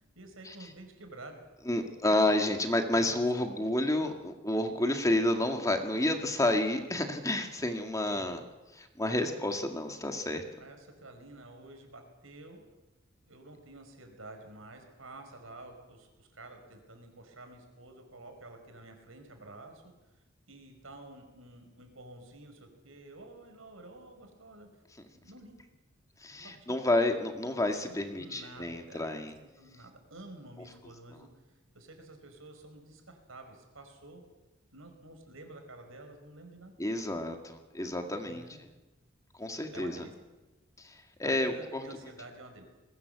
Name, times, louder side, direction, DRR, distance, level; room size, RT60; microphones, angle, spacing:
voice 1, 0.2-1.4 2.0-2.3 3.0-3.7 4.0-4.2 8.1-8.3 9.0-9.5 10.6-12.6 13.3-19.8 20.5-24.7 25.1-25.6 26.4-26.8 28.1-29.3 29.6-31.3 31.7-34.3 34.7-36.7 38.2-38.6 39.7-40.1 41.2-42.6, right 2 dB, 80° right, 5 dB, 5.2 m, -50 dB
voice 2, 1.7-8.4 8.7-10.4 26.2-29.3 36.8-38.4 39.4-40.1 40.8-41.8, left 1 dB, 15° left, 5 dB, 2.0 m, -30 dB
21.5 x 18.5 x 8.2 m, 1.1 s
head